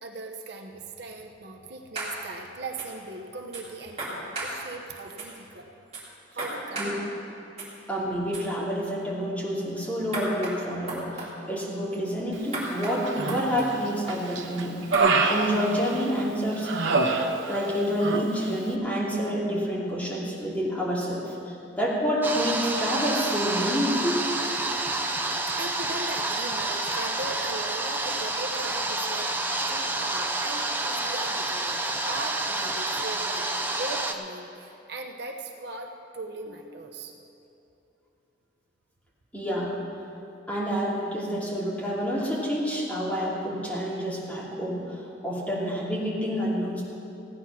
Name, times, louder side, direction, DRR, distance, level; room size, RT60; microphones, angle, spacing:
voice 1, 0.0-5.7 6.3-6.9 25.6-37.1, right 2 dB, 60° right, 2 dB, 1.0 m, -39 dB
sound 1, 1.9-2.1 2.8-2.9 3.5-3.6 4.0-4.5 5.2-5.3 5.9-6.0 6.4-6.9 7.6-7.7 8.3-8.4 10.1-10.6 10.9-11.3 12.5-13.0 13.3-13.7 14.9-15.0, right 2 dB, 35° right, 3.0 m, -34 dB
voice 2, 7.9-14.8 15.3-16.7 17.0-17.1 17.5-24.2 39.3-39.7 40.5-46.8, equal, 10° left, -6 dB, 2.8 m, -28 dB
Human voice, 13.0-13.7 14.1-16.2 16.6-17.7 18.0-18.3, right 3 dB, 85° right, 1.1 m, -25 dB
sound 2, 22.2-34.1, right 2 dB, 10° right, 0.7 m, -29 dB
16.0 x 9.8 x 6.0 m, 3.0 s
head